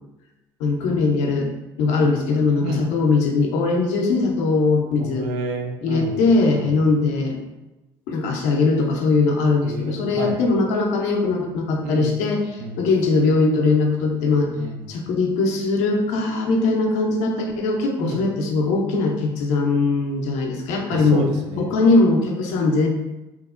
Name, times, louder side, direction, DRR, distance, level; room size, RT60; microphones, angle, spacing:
voice 1, 0.6-1.5 1.8-5.3 5.8-7.4 8.1-14.5 14.9-21.3 21.6-22.9, left 3 dB, 75° left, 1 dB, 0.5 m, -20 dB
voice 2, 5.0-6.7 9.6-10.4 11.8-12.1 12.6-12.8 14.6-14.9 18.0-18.2 20.9-21.7, right 3 dB, 80° right, 3 dB, 0.4 m, -30 dB
2.9 x 2.0 x 2.3 m, 1.0 s
hypercardioid pair, 70°, 12 cm